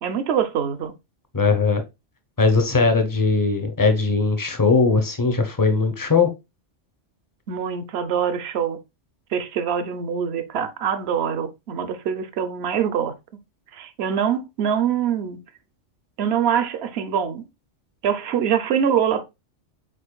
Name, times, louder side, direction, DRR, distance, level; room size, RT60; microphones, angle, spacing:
voice 1, 0.0-0.9 7.5-8.8 9.3-13.1 13.7-15.4 16.2-17.4 18.0-19.2, right 8 dB, 65° right, 0.9 m, -24 dB
voice 2, 1.3-1.8 2.4-6.3, left 4 dB, 25° left, 0.5 m, -19 dB
5.1 x 4.2 x 2.3 m
omnidirectional pair, 1.3 m